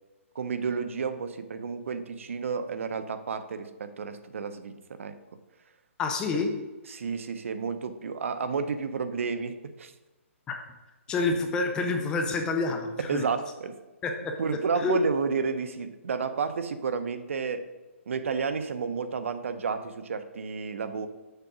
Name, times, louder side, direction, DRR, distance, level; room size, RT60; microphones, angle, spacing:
voice 1, 0.3-5.2 6.3-6.4 6.9-9.9 13.1-13.8 14.4-17.7 18.1-21.1, right 5 dB, 65° right, 11 dB, 0.8 m, -31 dB
voice 2, 6.0-6.5 10.5-10.6 11.1-13.2 14.0-14.3 14.8-15.0, left 3 dB, 10° left, 4 dB, 0.5 m, -28 dB
6.7 x 4.8 x 6.0 m, 1.1 s
hypercardioid pair, 165°, 7 cm